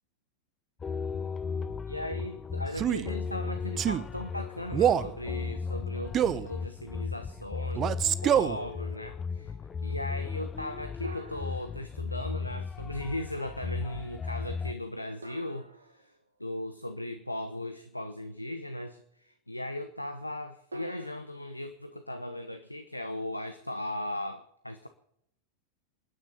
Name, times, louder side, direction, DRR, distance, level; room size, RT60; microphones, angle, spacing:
sound 1, 0.8-14.7, left 5 dB, 20° left, 0.9 m, -36 dB
voice 1, 1.9-9.6 9.8-16.1 16.4-24.9, left 1 dB, 85° left, 9 dB, 0.9 m, -38 dB
Male speech man speaking, 2.7-3.1 3.8-4.1 4.7-5.1 6.1-6.5 7.8-8.6, right 9 dB, 30° right, 0.7 m, -25 dB
sound 2, 4.4-5.3 5.8-5.9 7.8-8.7 11.0-12.6 15.2-16.6 20.7-21.2, right 1 dB, 75° right, 1.7 m, -48 dB
28.0 x 9.8 x 4.3 m, 0.75 s
figure-of-eight pair, 90°, 0 cm